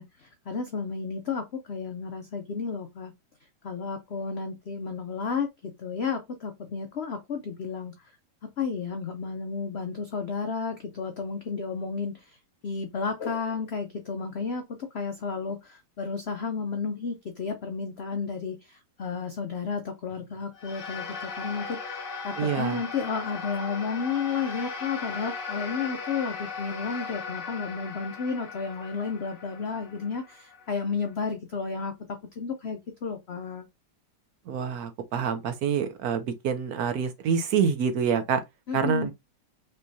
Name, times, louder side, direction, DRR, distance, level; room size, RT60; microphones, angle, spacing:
voice 1, 0.0-3.1 3.6-8.1 8.6-12.4 12.6-33.6 38.7-39.1, left 5 dB, 85° left, 0.5 m, -32 dB
sound 1, 20.5-31.1, left 5 dB, 35° left, 1.0 m, -37 dB
voice 2, 22.4-22.8 34.5-38.4 38.7-39.1, right 6 dB, 65° right, 1.0 m, -26 dB
5.4 x 3.0 x 2.7 m
omnidirectional pair, 2.0 m